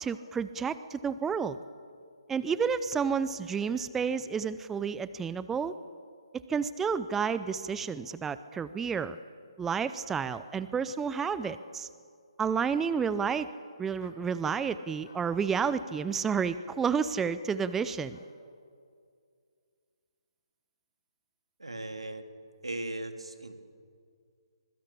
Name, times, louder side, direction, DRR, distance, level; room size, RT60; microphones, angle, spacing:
voice 1, 0.0-1.6 2.3-5.7 6.5-9.2 9.6-11.9 12.4-13.5 13.8-18.2, right 6 dB, 10° right, 14 dB, 0.6 m, -30 dB
sound 1, 10.3-10.5 11.4-11.6 12.6-12.9 14.0-14.2 15.0-15.2 15.9-16.1 17.1-17.3 17.6-17.8 18.1-18.3, left 4 dB, 50° left, 5.9 m, -56 dB
voice 2, 21.6-22.2 22.6-23.5, right 2 dB, 85° right, 6 dB, 2.7 m, -37 dB
25.0 x 22.0 x 8.4 m, 2.2 s
figure-of-eight pair, 140°, 3 cm